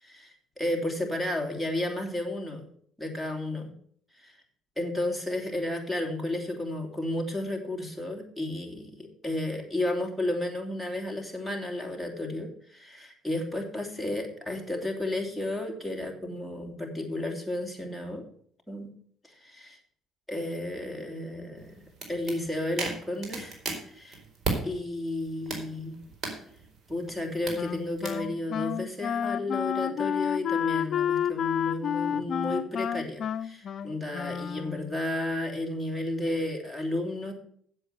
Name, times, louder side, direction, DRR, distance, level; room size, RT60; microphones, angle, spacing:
voice 1, 0.0-2.7 3.0-3.7 4.1-4.4 4.8-18.3 18.7-18.9 19.2-19.4 20.3-21.8 22.1-23.6 23.9-24.2 24.6-26.0 26.9-37.3, left 1 dB, ahead, 3 dB, 3.2 m, -32 dB
sound 1, 21.6-24.6 25.1-28.2, right 4 dB, 45° right, 4.2 m, -37 dB
Wind instrument woodwind instrument, 27.6-35.0, left 8 dB, 55° left, 0.6 m, -30 dB
7.9 x 7.8 x 7.9 m, 0.62 s
supercardioid pair, 80°, 0 cm